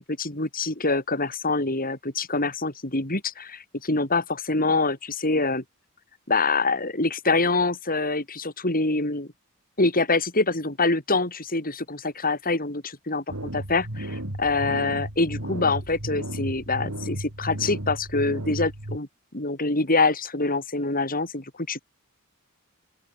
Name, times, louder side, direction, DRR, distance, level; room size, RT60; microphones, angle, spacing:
voice 1, 0.0-5.6 6.3-9.3 9.8-19.1 19.3-21.8, left 3 dB, 40° left, 7.3 m, -25 dB
sound 1, 13.3-19.0, right 1 dB, 75° right, 3.7 m, -34 dB
open air
head